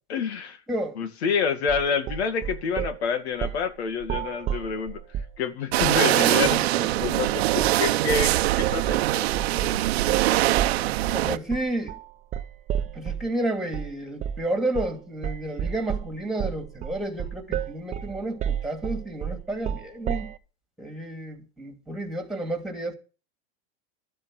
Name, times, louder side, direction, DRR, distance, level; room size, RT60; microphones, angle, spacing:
voice 1, 0.1-0.6 1.0-5.0 5.4-8.3 8.6-9.3, left 6 dB, 90° left, 2.2 m, -28 dB
sound 1, 1.7-3.0 3.4-3.7 4.0-5.4 5.8-6.1 6.4-6.6 7.0-7.3 7.6-13.3 13.7-13.9 14.2-14.5 14.8-15.0 15.2-20.4, right 9 dB, 25° right, 0.7 m, -31 dB
sound 2, 5.7-11.4, right 16 dB, 75° right, 0.9 m, -23 dB
voice 2, 11.1-11.9 12.9-20.3 20.8-23.0, right 1 dB, ahead, 2.5 m, -31 dB
13.0 x 7.6 x 7.6 m
supercardioid pair, 150°, 31 cm